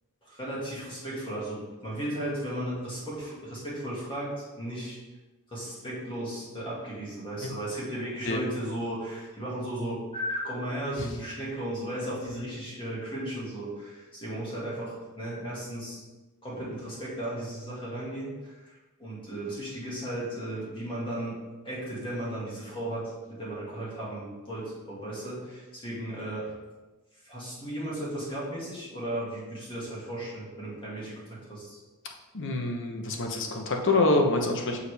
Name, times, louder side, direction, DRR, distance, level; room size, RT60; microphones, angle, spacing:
voice 1, 0.2-5.0 5.5-16.0 16.4-26.5 27.2-31.8, right 1 dB, 25° left, -7 dB, 2.0 m, -35 dB
voice 2, 32.3-34.8, left 2 dB, 60° left, 2 dB, 0.9 m, -26 dB
6.9 x 4.8 x 3.4 m, 1.2 s
head